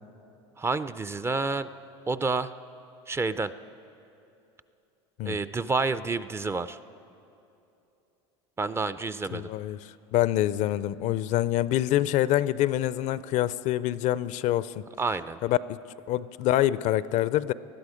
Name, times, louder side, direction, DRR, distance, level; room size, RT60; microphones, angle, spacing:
voice 1, 0.6-1.7 2.1-2.5 3.1-3.5 5.2-6.8 8.6-9.5 15.0-15.4, right 3 dB, 15° right, 14 dB, 0.4 m, -29 dB
voice 2, 9.3-9.8 10.1-14.8 15.4-15.8 16.1-17.5, left 13 dB, 55° left, 17 dB, 0.4 m, -26 dB
19.5 x 13.0 x 5.0 m, 2.8 s
hypercardioid pair, 95°, 15 cm